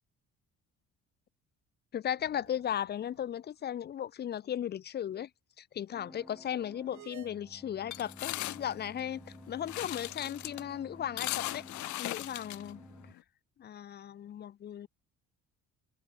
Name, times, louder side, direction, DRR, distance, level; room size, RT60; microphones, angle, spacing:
voice 1, 1.9-5.3 5.6-11.6 12.0-12.8 13.6-14.9, left 10 dB, 35° left, 0.5 m, -36 dB
sound 1, 2.2-3.9 4.2-4.3 6.9-7.3, right 15 dB, 75° right, 4.5 m, -56 dB
sound 2, 5.9-13.1, equal, ahead, 3.0 m, -53 dB
sound 3, 7.9-13.2, left 17 dB, 70° left, 0.9 m, -39 dB
cardioid pair, 130°, 30 cm